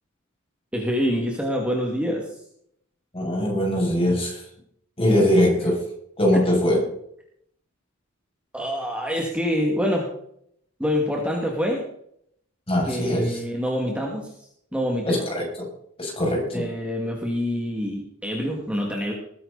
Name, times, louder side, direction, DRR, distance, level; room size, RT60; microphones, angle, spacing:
voice 1, 0.7-2.3 6.3-6.4 8.5-10.1 10.8-11.8 12.9-14.3 14.7-15.2 16.5-19.1, equal, 5° right, -1 dB, 2.4 m, -26 dB
voice 2, 3.1-4.4 5.0-5.8 6.2-6.8 12.7-13.4 15.1-15.7 16.0-16.6, equal, 30° left, -1 dB, 7.2 m, -21 dB
21.0 x 10.5 x 4.2 m, 0.70 s
head